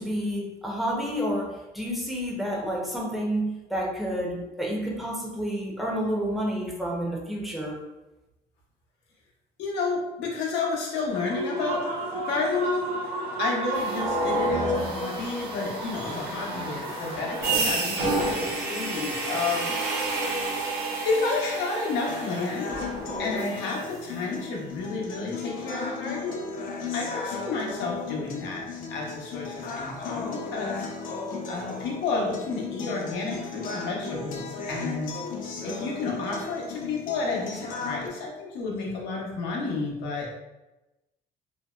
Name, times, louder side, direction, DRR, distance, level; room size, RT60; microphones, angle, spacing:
voice 1, 0.0-7.8, equal, ahead, -3 dB, 0.5 m, -29 dB
voice 2, 9.6-11.8 12.3-20.4 21.0-22.9 23.2-26.4 26.9-30.9 31.5-35.2 35.6-40.4, left 3 dB, 85° left, -1 dB, 0.7 m, -31 dB
Human voice / Cheering / Applause, 11.1-18.7, right 2 dB, 85° right, 1.1 m, -34 dB
sound 1, 13.7-23.8, right 2 dB, 65° right, 0.6 m, -30 dB
sound 2, 22.1-38.1, left 4 dB, 55° left, 0.5 m, -36 dB
2.6 x 2.0 x 2.3 m, 1.0 s
cardioid pair, 110°, 17 cm